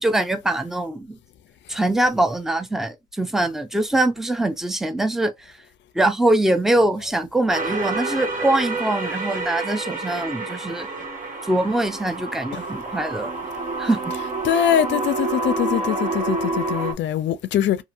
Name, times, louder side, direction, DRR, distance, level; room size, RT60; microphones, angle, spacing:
voice 1, 0.0-1.2 1.7-5.5 5.9-10.9 11.5-13.3 13.8-14.0, right 1 dB, ahead, 0.5 m, -23 dB
sound 1, 7.5-16.9, right 3 dB, 40° right, 1.0 m, -28 dB
voice 2, 14.4-17.8, left 10 dB, 65° left, 0.5 m, -22 dB
2.8 x 2.5 x 2.5 m
cardioid pair, 90°, 20 cm